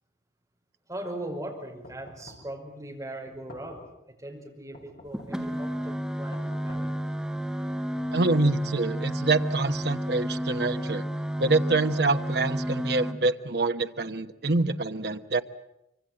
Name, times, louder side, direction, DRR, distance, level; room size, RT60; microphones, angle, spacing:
voice 1, 0.9-6.9, right 1 dB, 20° right, 0 dB, 5.6 m, -39 dB
sound 1, 1.8-2.6 3.3-4.0 4.7-5.5 6.3-7.1 7.8-8.4 9.1-10.0, left 1 dB, 55° left, 4.9 m, -50 dB
sound 2, 5.1-13.1, right 1 dB, 5° right, 1.6 m, -31 dB
voice 2, 8.1-11.0 11.4-15.4, right 3 dB, 65° right, 8 dB, 1.1 m, -26 dB
25.0 x 24.0 x 7.7 m, 0.85 s
head